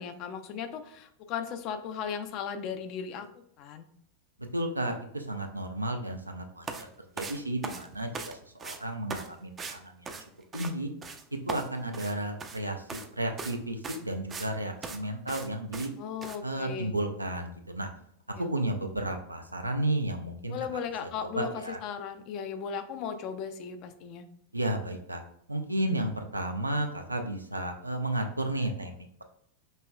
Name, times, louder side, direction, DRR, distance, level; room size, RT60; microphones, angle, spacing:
voice 1, 0.0-3.3 3.6-3.9 16.0-16.9 18.4-18.5 20.5-24.3, left 7 dB, 40° left, 8 dB, 0.5 m, -36 dB
voice 2, 4.4-6.9 7.2-10.1 10.5-10.9 11.5-15.9 16.4-17.9 18.4-20.8 21.2-21.8 24.5-25.2 25.5-29.2, right 1 dB, 85° right, 5 dB, 0.5 m, -33 dB
sound 1, 6.6-6.8 7.2-8.3 8.6-8.8 9.1-9.3 9.6-9.8 10.1-10.7 11.0-11.2 11.5-12.6 12.9-13.1 13.4-13.6 13.8-14.5 14.8-15.0 15.3-15.5 15.7-15.9 16.2-16.4, right 4 dB, 20° right, 0.4 m, -39 dB
5.4 x 3.0 x 2.2 m, 0.66 s
figure-of-eight pair, 90°, 0 cm